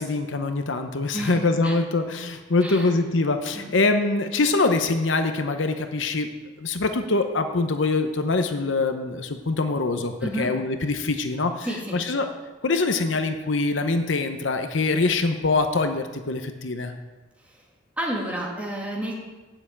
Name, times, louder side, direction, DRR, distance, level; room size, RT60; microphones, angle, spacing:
voice 1, 0.0-6.3 6.6-11.7 11.9-12.3 12.6-16.9, left 3 dB, 75° left, 7 dB, 0.8 m, -24 dB
voice 2, 2.6-2.9 3.5-3.7 10.2-10.5 11.6-12.0 18.0-19.1, right 1 dB, 5° right, -4 dB, 2.3 m, -30 dB
7.8 x 7.0 x 8.4 m, 1.2 s
head